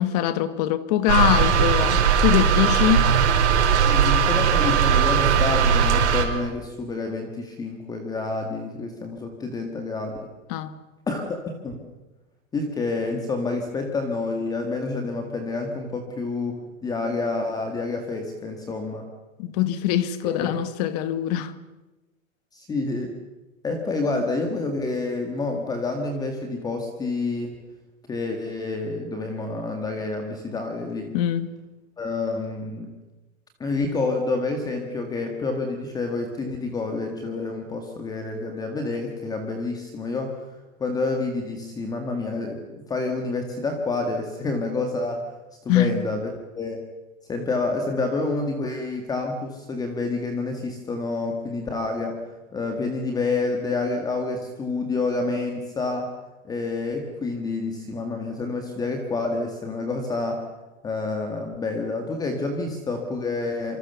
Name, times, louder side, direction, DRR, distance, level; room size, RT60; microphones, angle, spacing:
voice 1, 0.0-3.1 10.5-10.8 19.4-21.5 31.1-31.5 45.7-45.9, left 12 dB, 30° left, 1.3 m, -23 dB
sound 1, 1.1-6.2, right 7 dB, 55° right, 5.0 m, -19 dB
voice 2, 3.8-10.3 11.1-11.8 12.5-19.1 20.2-20.6 22.5-23.2 23.6-27.6 28.1-31.2 32.0-33.0 33.6-40.4 40.8-45.3 45.6-46.9 47.3-56.1 56.4-60.5 60.8-63.8, left 3 dB, 10° left, 1.8 m, -28 dB
27.0 x 25.5 x 6.9 m
hypercardioid pair, 160°, 41 cm